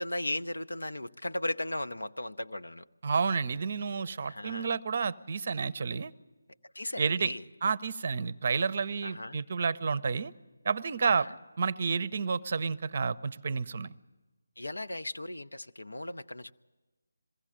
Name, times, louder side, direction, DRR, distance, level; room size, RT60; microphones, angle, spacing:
voice 1, 0.0-2.8 4.2-4.7 6.7-7.4 9.0-9.4 11.0-11.3 14.6-16.5, left 1 dB, 85° left, 10 dB, 0.7 m, -36 dB
voice 2, 3.0-6.1 7.0-7.3 7.6-10.3 10.6-11.3 11.6-13.9, right 5 dB, 45° right, 18 dB, 0.6 m, -30 dB
22.0 x 16.0 x 8.6 m, 1.2 s
figure-of-eight pair, 160°, 0 cm